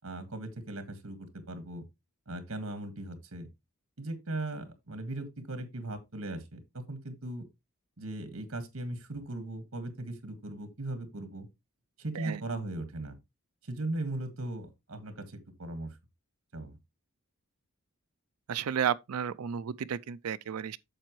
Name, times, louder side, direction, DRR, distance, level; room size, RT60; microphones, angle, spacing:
voice 1, 0.0-1.8 2.3-3.5 4.0-7.4 8.0-11.5 12.0-13.2 13.6-16.0 16.5-16.8, right 2 dB, 65° right, 1.7 m, -38 dB
voice 2, 18.5-20.8, right 8 dB, 85° right, 0.4 m, -32 dB
8.8 x 6.8 x 3.1 m
head